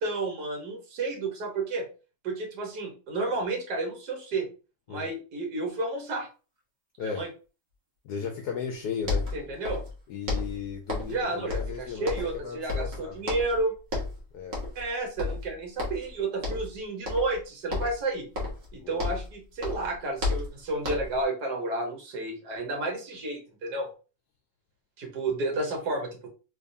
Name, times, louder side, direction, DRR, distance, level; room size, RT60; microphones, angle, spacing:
voice 1, 0.0-1.9 2.2-4.5 4.9-6.3 7.0-7.3 9.3-9.8 11.1-13.7 14.7-18.3 18.7-23.9 25.0-26.3, right 2 dB, 65° right, 1.7 m, -31 dB
voice 2, 8.0-9.3 10.1-13.1 14.3-14.6 18.8-19.0, left 6 dB, 70° left, 1.0 m, -35 dB
sound 1, 8.7-8.8 9.0-10.0 10.3-11.2 11.5-12.4 12.7-13.6 13.9-14.2 14.5-14.9 15.2-16.1 16.4-16.7 17.0-17.4 17.7-19.3 19.6-21.2, left 3 dB, 40° right, 1.3 m, -32 dB
3.5 x 3.2 x 2.6 m
omnidirectional pair, 2.0 m